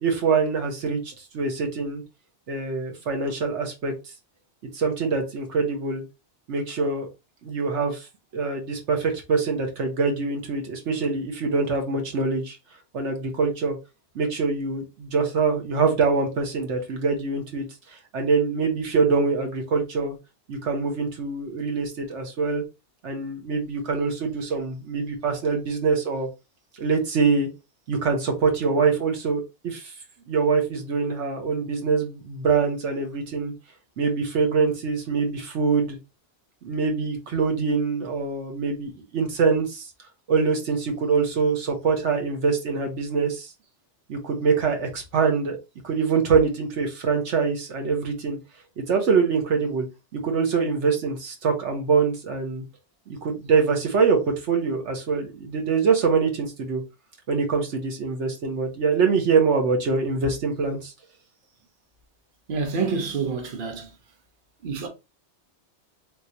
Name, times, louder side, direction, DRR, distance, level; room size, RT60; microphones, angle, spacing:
voice 1, 0.0-2.0 2.5-3.9 4.7-6.0 6.5-7.1 7.4-8.1 8.3-12.6 12.9-13.8 14.1-17.6 18.1-20.2 20.5-22.6 23.0-26.3 26.8-27.5 27.9-29.9 30.3-33.5 34.0-36.0 36.6-39.9 40.3-43.5 44.1-45.6 45.8-48.4 48.8-49.9 50.1-52.6 53.1-56.8 57.3-60.9, right 5 dB, 90° right, 1.3 m, -24 dB
voice 2, 62.5-63.9 64.6-64.9, right 5 dB, 50° right, 0.9 m, -27 dB
3.5 x 2.9 x 2.7 m
omnidirectional pair, 1.2 m